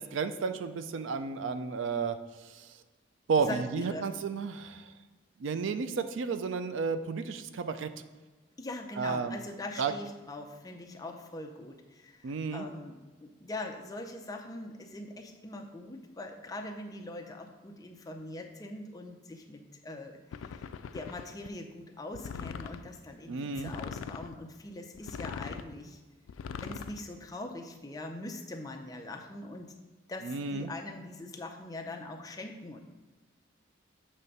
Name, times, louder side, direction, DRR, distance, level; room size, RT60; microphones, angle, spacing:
voice 1, 0.1-2.8 3.3-4.9 5.4-7.9 9.0-9.4 9.8-9.9 12.2-12.7 23.3-23.7 30.2-30.7, right 5 dB, 70° right, 10 dB, 0.4 m, -32 dB
voice 2, 3.4-4.1 8.6-20.7 20.9-26.0 26.6-29.7 30.1-32.8, left 2 dB, 20° left, 3 dB, 0.5 m, -42 dB
sound 1, 20.3-21.5 22.1-22.9 23.6-24.3 24.9-25.7 26.3-27.0, left 6 dB, 85° left, 0.3 m, -40 dB
7.3 x 3.3 x 5.3 m, 1.3 s
head